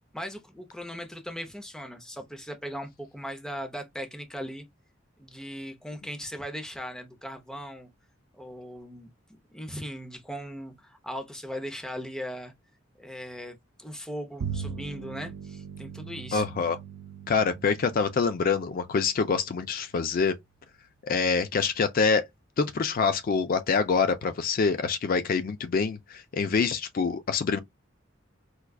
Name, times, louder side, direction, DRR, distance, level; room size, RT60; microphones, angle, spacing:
voice 1, 0.1-4.6 5.2-7.9 8.4-9.1 9.5-12.5 13.0-16.5, equal, 5° left, 0.6 m, -38 dB
Bowed string instrument, 14.4-20.0, right 7 dB, 80° right, 0.4 m, -40 dB
voice 2, 16.3-16.8 17.3-20.3 21.0-22.2 22.6-27.6, left 5 dB, 45° left, 0.4 m, -25 dB
4.5 x 2.3 x 2.3 m
head